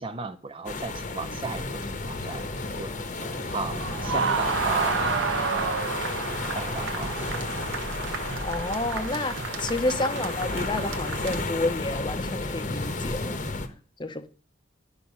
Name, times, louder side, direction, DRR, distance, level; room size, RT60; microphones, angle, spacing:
voice 1, 0.0-1.7 2.0-2.4 2.8-2.9 3.2-5.2 5.5-5.8 6.6-7.4 10.1-10.3, right 4 dB, 25° right, 0.5 m, -35 dB
sound 1, 0.7-13.7, left 3 dB, 40° left, 0.9 m, -33 dB
sound 2, 2.1-11.4, right 4 dB, 85° right, 1.1 m, -31 dB
sound 3, 7.0-10.9, right 2 dB, 65° right, 0.6 m, -44 dB
voice 2, 8.4-13.4 14.0-14.3, left 2 dB, 25° left, 0.6 m, -30 dB
11.0 x 5.7 x 5.4 m
head